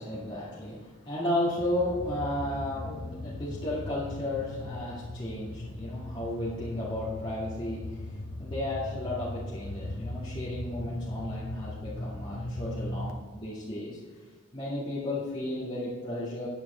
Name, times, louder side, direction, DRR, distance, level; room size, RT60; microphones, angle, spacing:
voice 1, 0.0-14.0 14.5-16.5, left 1 dB, 25° left, -9 dB, 2.2 m, -34 dB
sound 1, 1.4-13.1, left 1 dB, 70° left, 0.9 m, -38 dB
9.7 x 9.6 x 4.4 m, 1.4 s
head